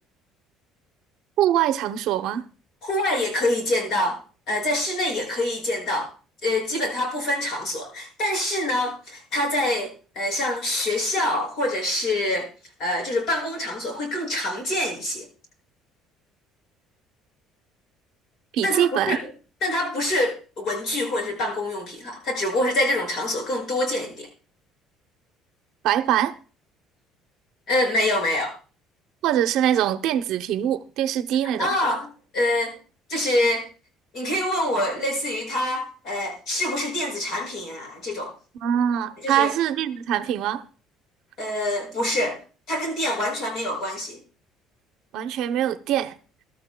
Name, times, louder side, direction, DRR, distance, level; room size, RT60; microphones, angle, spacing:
voice 1, 1.4-2.5 18.5-19.2 25.8-26.3 29.2-31.8 38.6-40.6 45.1-46.1, right 11 dB, 60° right, 0.7 m, -23 dB
voice 2, 2.8-4.2 4.5-6.1 6.4-12.5 12.8-15.3 18.6-19.2 19.6-24.3 27.7-28.5 31.6-32.1 32.3-32.8 33.1-33.7 34.1-38.3 39.2-39.5 41.4-42.4 42.7-44.2, left 1 dB, 45° left, 6.2 m, -25 dB
21.5 x 12.5 x 2.2 m
cardioid pair, 165°, 0 cm